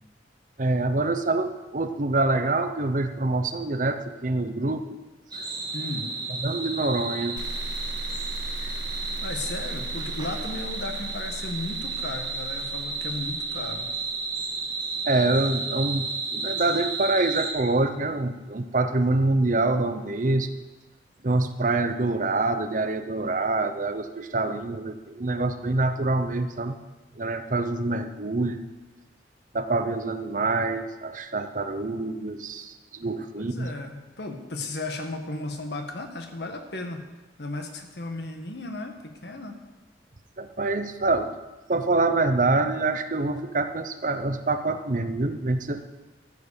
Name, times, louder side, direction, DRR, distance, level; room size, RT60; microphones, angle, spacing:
voice 1, 0.6-5.0 5.3-5.5 6.4-7.4 8.6-8.7 15.1-20.5 21.2-26.7 27.1-28.6 29.5-33.7 40.4-41.4 41.7-45.8, right 2 dB, 45° right, 9 dB, 0.8 m, -26 dB
sound 1, 5.3-17.5, right 3 dB, 25° right, 2.6 m, -32 dB
voice 2, 5.7-6.1 8.7-8.9 9.2-13.9 33.0-37.1 37.4-39.6, left 2 dB, 65° left, 5 dB, 1.6 m, -35 dB
sound 2, 7.4-14.5, right 3 dB, 90° right, 0.6 m, -38 dB
13.5 x 8.1 x 6.9 m, 1.2 s
head